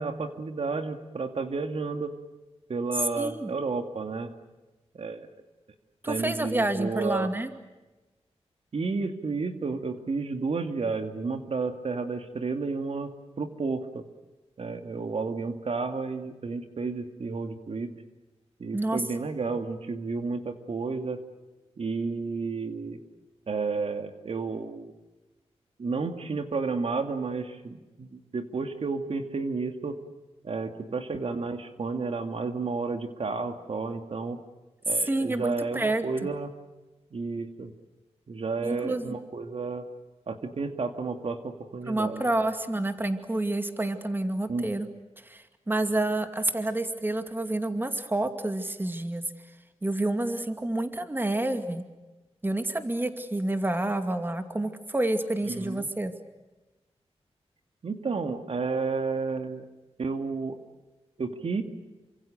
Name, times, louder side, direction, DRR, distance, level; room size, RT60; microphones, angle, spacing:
voice 1, 0.0-2.2 2.7-4.3 5.0-5.3 6.1-7.3 8.7-14.0 14.6-17.9 18.6-21.2 21.8-23.0 23.5-24.9 25.8-30.0 30.4-34.4 34.9-36.5 37.1-37.7 38.3-39.8 40.3-42.2 44.5-44.7 55.5-55.9 57.8-59.6 60.0-60.6 61.2-61.6, right 4 dB, 60° right, 7 dB, 2.4 m, -31 dB
voice 2, 3.2-3.5 6.0-7.5 18.7-19.0 34.9-36.0 38.6-39.1 41.9-44.9 45.2-49.2 49.8-51.8 52.4-56.1, right 2 dB, 20° right, 8 dB, 2.4 m, -28 dB
29.0 x 25.5 x 6.6 m, 1.1 s
wide cardioid pair, 100°, 11 cm